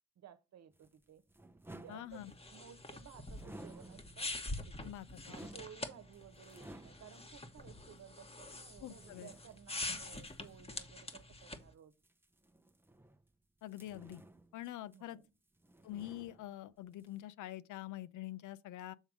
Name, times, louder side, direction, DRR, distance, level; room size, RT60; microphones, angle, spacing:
voice 1, 0.2-1.2 1.7-4.3 4.7-4.9 5.2-11.9 14.9-15.3, right 9 dB, 60° right, 1.1 m, -57 dB
sound 1, 0.7-2.7 3.3-4.4 4.8-7.4 8.0-8.1 8.9-10.6 11.9-13.3 13.7-15.3 15.5-16.7 17.0-17.2, right 1 dB, 5° right, 0.7 m, -56 dB
voice 2, 1.9-2.3 4.8-5.4 8.8-9.3 9.9-10.0 13.6-14.2 14.5-15.2 15.8-18.9, left 14 dB, 80° left, 0.6 m, -45 dB
sound 2, 2.1-11.7, left 2 dB, 20° left, 1.2 m, -45 dB
7.2 x 3.5 x 6.2 m
cardioid pair, 90°, 30 cm